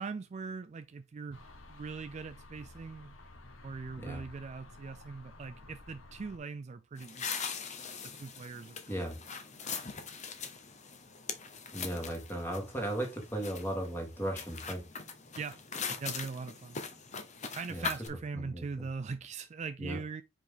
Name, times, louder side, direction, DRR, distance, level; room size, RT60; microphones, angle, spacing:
voice 1, 0.0-3.1 3.6-7.6 8.2-9.1 9.6-9.8 15.4-15.6 16.0-16.8 17.5-20.2, right 4 dB, 35° right, 0.3 m, -41 dB
sound 1, 1.3-6.4, left 2 dB, 65° left, 1.3 m, -52 dB
sound 2, 7.0-18.1, left 5 dB, 35° left, 0.8 m, -41 dB
voice 2, 8.9-9.2 11.7-14.8 17.7-17.9 18.3-18.9 19.8-20.0, right 1 dB, 10° left, 1.8 m, -36 dB
5.0 x 4.9 x 3.8 m
head